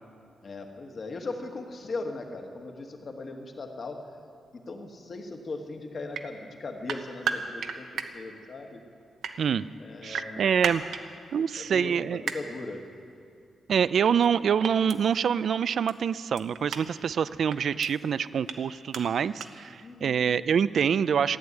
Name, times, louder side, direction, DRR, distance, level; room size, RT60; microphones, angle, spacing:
voice 1, 0.4-4.0 4.7-8.8 9.8-10.6 11.6-12.8 19.8-20.2, left 3 dB, 35° left, 4 dB, 1.4 m, -38 dB
sound 1, 6.1-6.2 6.9-8.1 9.0-9.3 10.1-11.0 12.3-12.4 14.0-14.3 14.6-15.0 15.9-16.0 16.4-16.8 17.5-17.9 18.5-18.6 18.9-19.0 19.4-19.5, right 7 dB, 80° right, 0.9 m, -32 dB
voice 2, 10.0-10.8 11.3-12.2 13.7-21.4, right 7 dB, 55° right, 17 dB, 0.3 m, -26 dB
15.0 x 8.8 x 9.5 m, 2.6 s
wide cardioid pair, 170°, 0 cm